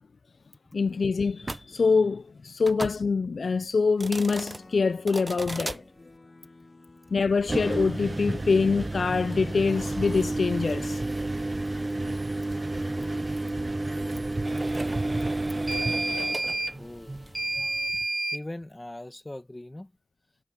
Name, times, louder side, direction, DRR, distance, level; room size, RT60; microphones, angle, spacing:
voice 1, 0.7-5.8 7.1-11.0, left 4 dB, 80° left, 0.3 m, -25 dB
sound 1, 1.4-1.6 2.6-3.0 3.9-4.6 5.1-5.8 7.4-18.4, right 2 dB, 30° right, 0.6 m, -30 dB
sound 2, 4.2-17.9, left 2 dB, 45° left, 2.0 m, -54 dB
voice 2, 16.8-17.2 18.3-19.9, left 1 dB, 20° left, 1.8 m, -40 dB
wide cardioid pair, 95°, 0 cm